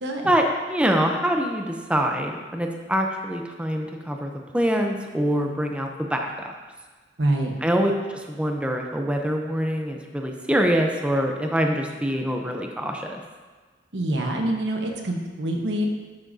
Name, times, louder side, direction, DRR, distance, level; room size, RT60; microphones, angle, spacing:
voice 1, 0.2-6.6 7.6-13.2, equal, 5° right, 2 dB, 0.5 m, -25 dB
voice 2, 7.2-7.5 13.9-15.9, right 1 dB, 85° right, 2 dB, 1.1 m, -25 dB
11.5 x 6.2 x 2.6 m, 1.4 s
head